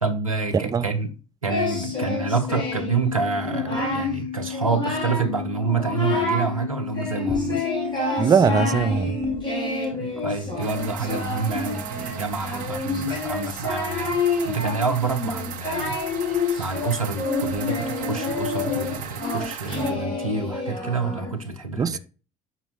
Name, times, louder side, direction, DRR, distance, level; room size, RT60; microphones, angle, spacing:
voice 1, 0.0-7.6 9.9-16.0 16.6-22.0, right 4 dB, 90° right, 0.7 m, -28 dB
Singing, 1.5-3.0 3.4-4.1 4.5-5.3 5.6-6.5 6.9-21.4, left 3 dB, 25° left, 3.8 m, -28 dB
sound 1, 1.7-10.2, left 9 dB, 80° left, 0.5 m, -34 dB
voice 2, 8.2-9.2 21.8-22.0, right 6 dB, 20° right, 0.4 m, -20 dB
sound 2, 10.6-19.9, right 9 dB, 55° right, 0.7 m, -37 dB
7.6 x 5.2 x 3.2 m
figure-of-eight pair, 55°, 17 cm